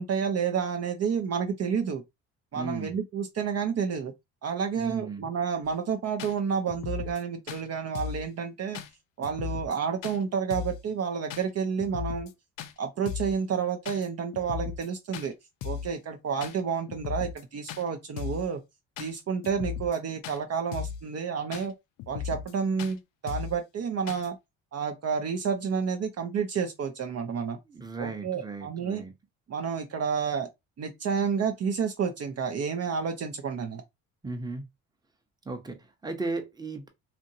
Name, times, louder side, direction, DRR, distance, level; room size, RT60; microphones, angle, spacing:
voice 1, 0.0-2.0 2.5-4.1 4.4-8.8 9.2-12.3 12.8-15.3 15.6-18.6 19.0-21.7 22.1-24.4 24.7-27.6 28.0-29.0 29.5-30.5 30.8-33.8, right 6 dB, 45° right, 0.6 m, -30 dB
voice 2, 2.5-2.9 4.8-5.3 27.7-29.1 34.2-34.6 35.4-36.9, right 3 dB, 10° right, 0.8 m, -35 dB
sound 1, 5.6-5.7 6.2-6.3 6.7-7.2 7.5-7.6 7.9-8.3 8.7-8.9 9.2-9.8 10.0-10.2 10.5-10.8 11.3-11.4 11.8-12.3 12.6-12.7 13.1-13.4 13.8-14.1 14.3-14.9 15.1-15.3 15.6-15.9 16.4-16.6 16.9-17.4 17.7-17.8 18.2-18.5 19.0-19.1 19.4-20.0 20.2-20.4 20.7-21.0 21.5-21.7 22.0-22.5 22.8-22.9 23.3-23.6 24.1-24.3, left 8 dB, 70° left, 0.5 m, -36 dB
2.8 x 2.5 x 2.7 m
supercardioid pair, 75°, 35 cm